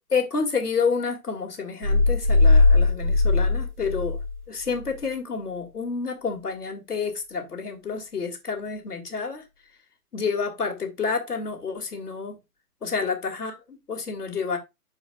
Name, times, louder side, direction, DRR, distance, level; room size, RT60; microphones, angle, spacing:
voice 1, 0.1-4.2 4.5-9.4 10.1-12.4 12.8-14.6, left 5 dB, 75° left, 2.3 m, -29 dB
sound 1, 1.8-4.4 4.7-4.8, left 3 dB, 65° right, 2.1 m, -19 dB
12.0 x 4.9 x 2.4 m
figure-of-eight pair, 130°, 47 cm